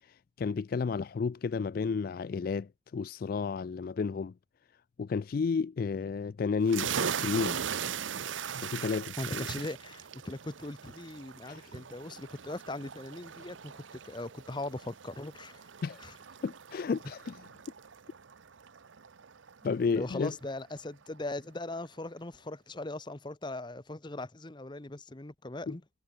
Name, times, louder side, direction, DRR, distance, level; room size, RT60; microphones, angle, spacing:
voice 1, 0.0-4.3 5.0-7.6 8.6-9.5 11.5-11.7 15.8-16.1 16.4-17.4 19.6-20.3 25.7-25.8, left 5 dB, 50° left, 0.3 m, -32 dB
sound 1, 6.7-20.0, right 7 dB, 80° right, 0.8 m, -39 dB
voice 2, 9.2-15.7 16.0-16.1 19.9-25.8, left 2 dB, 25° left, 0.9 m, -40 dB
head